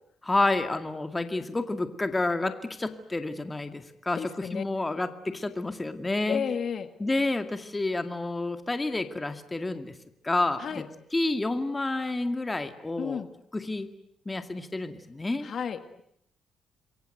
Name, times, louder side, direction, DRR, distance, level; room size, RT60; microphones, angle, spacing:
voice 1, 0.2-6.4 7.0-9.9 10.2-10.8 11.1-13.2 13.5-13.9 14.3-15.5, left 2 dB, 15° left, 8 dB, 2.2 m, -29 dB
voice 2, 4.2-4.6 6.3-6.9 10.6-10.8 13.0-13.3 15.4-16.0, left 7 dB, 50° left, 10 dB, 1.9 m, -32 dB
28.0 x 23.0 x 9.3 m, 0.74 s
cardioid pair, 130°, 0 cm